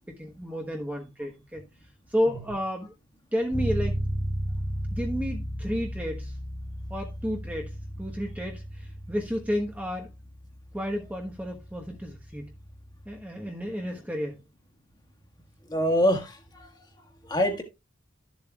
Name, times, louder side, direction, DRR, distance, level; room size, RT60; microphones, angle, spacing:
voice 1, 0.1-1.6 2.1-2.9 3.3-4.0 4.9-6.4 6.9-10.1 10.7-12.5 13.0-14.4, equal, 5° right, 1.1 m, -31 dB
Bass guitar, 3.5-13.2, equal, 30° right, 2.4 m, -35 dB
voice 2, 15.7-16.7 17.2-17.6, equal, 20° left, 1.6 m, -25 dB
13.0 x 7.2 x 2.3 m
head